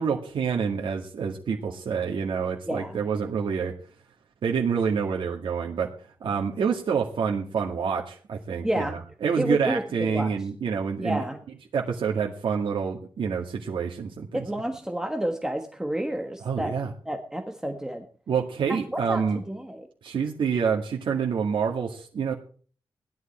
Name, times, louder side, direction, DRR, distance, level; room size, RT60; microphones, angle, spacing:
voice 1, 0.0-3.7 4.4-5.9 6.2-11.2 11.7-14.4 16.4-16.9 18.3-19.4 20.0-22.3, right 6 dB, 70° right, -1 dB, 2.1 m, -27 dB
voice 2, 2.7-3.0 8.6-9.0 9.4-9.8 10.1-10.3 11.0-11.4 14.3-16.7 17.0-18.0 18.7-19.9, right 1 dB, 5° right, 5 dB, 1.4 m, -30 dB
17.5 x 11.5 x 4.4 m, 0.43 s
wide cardioid pair, 155°, 9 cm